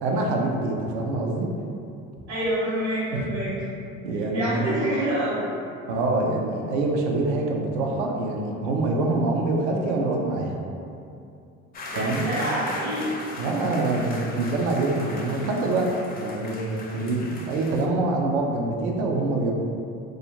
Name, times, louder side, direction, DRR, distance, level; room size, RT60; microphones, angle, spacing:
voice 1, 0.0-1.5 3.1-3.3 4.0-4.7 5.9-10.6 12.0-12.2 13.4-15.9 16.2-19.5, right 2 dB, 85° right, 0 dB, 0.5 m, -25 dB
voice 2, 2.3-3.5 4.3-5.4 11.9-13.1, right 1 dB, 55° right, -12 dB, 1.0 m, -26 dB
sound 1, 11.7-17.9, left 2 dB, 30° left, 0.4 m, -38 dB
2.4 x 2.4 x 2.8 m, 2.6 s
hypercardioid pair, 70°, 33 cm